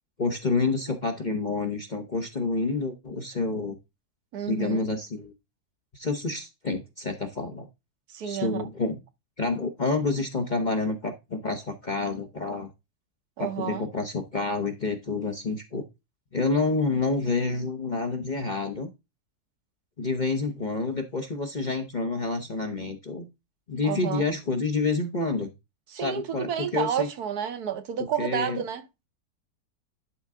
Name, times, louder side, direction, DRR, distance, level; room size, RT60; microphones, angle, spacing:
voice 1, 0.2-3.8 4.5-5.3 5.9-7.7 8.2-9.0 9.4-12.7 13.4-15.8 16.3-18.9 20.0-23.3 23.7-25.5 26.0-27.1 28.2-28.6, left 3 dB, 35° left, 0.9 m, -28 dB
voice 2, 4.3-4.9 8.1-8.6 13.4-13.8 23.8-24.2 25.9-28.8, right 9 dB, 65° right, 1.3 m, -30 dB
11.0 x 4.5 x 3.7 m
omnidirectional pair, 1.8 m